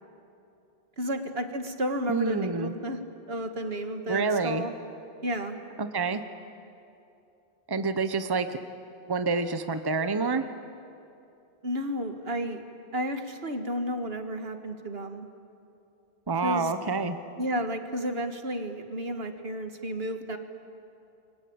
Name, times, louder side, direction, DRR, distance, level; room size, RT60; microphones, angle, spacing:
voice 1, 1.0-3.0 3.3-4.7 5.2-5.6 11.6-12.6 12.9-15.3 16.4-16.7 17.4-20.4, equal, 70° right, 7 dB, 2.0 m, -32 dB
voice 2, 2.1-2.7 4.1-4.6 5.8-6.2 7.7-8.6 9.1-10.5 16.3-17.2, right 4 dB, 25° right, 9 dB, 0.9 m, -27 dB
28.5 x 23.5 x 8.8 m, 2.7 s
omnidirectional pair, 1.1 m